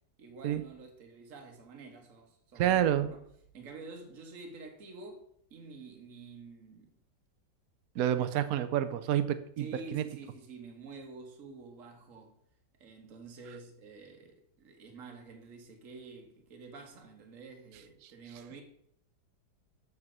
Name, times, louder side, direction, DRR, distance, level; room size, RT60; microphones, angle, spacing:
voice 1, 0.2-3.2 3.5-6.9 8.1-8.2 9.6-12.4 12.8-18.6, right 4 dB, 50° right, 1.6 m, -49 dB
voice 2, 2.6-3.1 7.9-10.0 18.0-18.1, right 11 dB, 65° right, 1.0 m, -29 dB
7.2 x 4.9 x 6.1 m
omnidirectional pair, 2.0 m